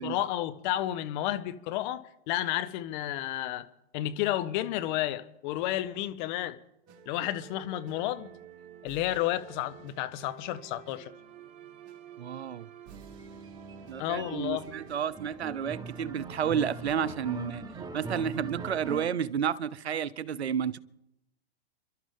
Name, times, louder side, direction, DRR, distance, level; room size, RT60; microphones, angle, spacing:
voice 1, 0.0-3.7 3.9-6.6 7.1-8.3 8.8-11.1 14.0-14.6, left 13 dB, 45° left, 1.1 m, -31 dB
sound 1, 6.9-16.9, right 10 dB, 50° right, 2.0 m, -51 dB
voice 2, 12.2-12.7 13.9-17.6 17.9-20.8, right 8 dB, 80° right, 0.8 m, -31 dB
sound 2, 12.9-19.1, right 3 dB, 10° right, 1.3 m, -42 dB
29.0 x 12.5 x 3.8 m
hypercardioid pair, 105°, 32 cm